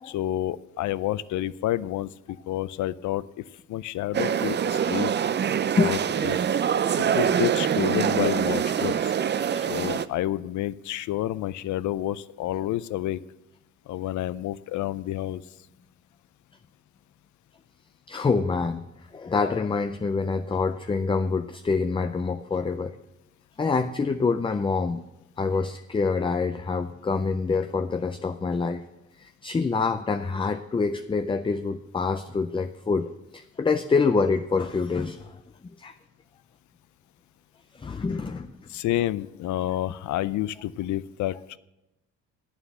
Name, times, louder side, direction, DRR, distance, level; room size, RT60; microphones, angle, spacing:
voice 1, 0.0-3.2 3.7-5.1 5.8-6.4 7.0-9.1 9.5-13.2 13.9-15.4 38.7-41.6, left 14 dB, 75° left, 17 dB, 0.5 m, -29 dB
sound 1, 4.1-10.1, right 8 dB, 35° right, 0.5 m, -25 dB
voice 2, 18.1-18.8 19.1-22.9 23.6-25.0 25.4-28.8 29.2-35.3 35.8-35.9 37.8-38.5, left 4 dB, 15° left, 8 dB, 0.5 m, -26 dB
9.0 x 7.1 x 8.8 m, 0.96 s
cardioid pair, 90°, 30 cm